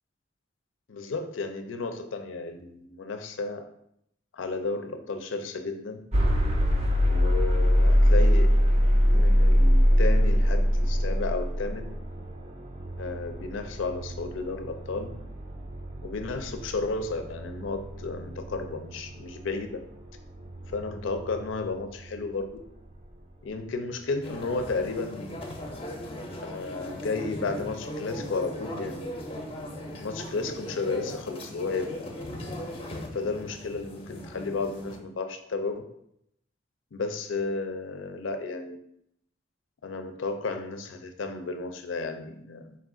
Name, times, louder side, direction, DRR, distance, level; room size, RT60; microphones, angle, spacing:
voice 1, 0.9-3.6 4.3-6.0 7.1-8.5 9.1-11.9 13.0-15.1 16.0-19.8 20.6-22.4 23.4-25.4 26.4-29.1 30.0-32.0 33.1-35.8 36.9-38.8 39.8-42.8, left 3 dB, 80° left, 7 dB, 0.4 m, -33 dB
sound 1, 6.1-22.1, equal, 35° right, 0.4 m, -24 dB
sound 2, 24.2-35.0, left 1 dB, 30° left, 0.5 m, -38 dB
4.3 x 2.4 x 3.6 m, 0.75 s
head